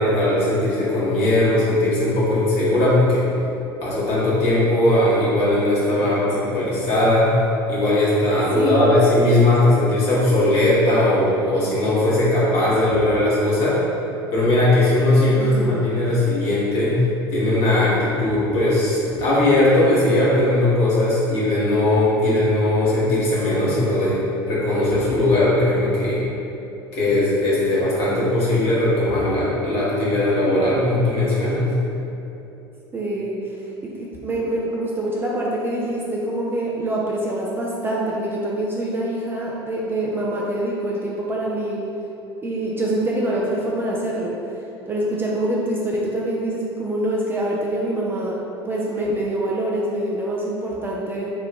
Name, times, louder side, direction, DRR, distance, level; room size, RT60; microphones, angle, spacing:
voice 1, 0.0-3.3 3.8-7.3 7.7-13.8 14.3-24.2 24.5-26.2 26.9-31.7, left 1 dB, 45° left, -9 dB, 1.1 m, -19 dB
voice 2, 6.0-6.5 8.5-9.0 15.3-15.9 32.9-41.9 42.4-48.4 48.7-51.3, right 1 dB, 15° right, -4 dB, 0.3 m, -25 dB
2.9 x 2.3 x 3.3 m, 2.9 s
figure-of-eight pair, 70°, 13 cm